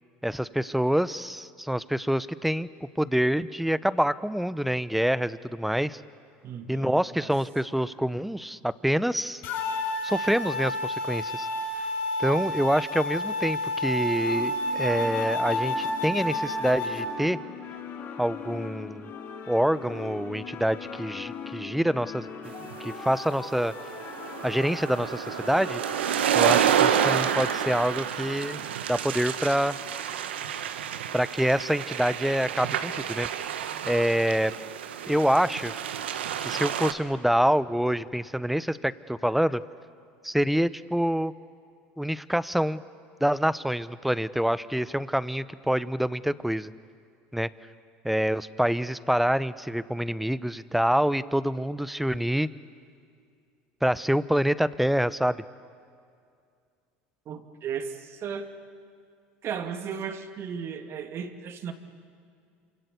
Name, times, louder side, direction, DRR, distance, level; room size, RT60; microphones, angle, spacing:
voice 1, 0.2-2.7 3.0-6.0 6.7-9.4 10.0-11.5 12.2-17.4 18.2-19.1 19.5-22.5 22.8-23.7 24.4-25.8 26.3-28.6 28.9-29.8 31.1-33.3 33.9-34.5 35.1-35.7 36.4-39.6 40.2-41.3 42.0-42.8 43.2-46.7 47.3-47.5 48.0-52.5 53.8-55.4, equal, ahead, 16 dB, 0.9 m, -26 dB
voice 2, 6.4-7.3 57.3-58.5 59.4-61.7, right 7 dB, 50° right, 7 dB, 2.5 m, -35 dB
sound 1, 9.4-17.0, left 1 dB, 65° left, 6.2 m, -30 dB
sound 2, 14.2-27.8, left 6 dB, 45° left, 5.4 m, -40 dB
sound 3, 22.7-36.9, right 9 dB, 90° right, 1.2 m, -29 dB
27.0 x 25.0 x 8.4 m, 2.3 s
hypercardioid pair, 85°, 6 cm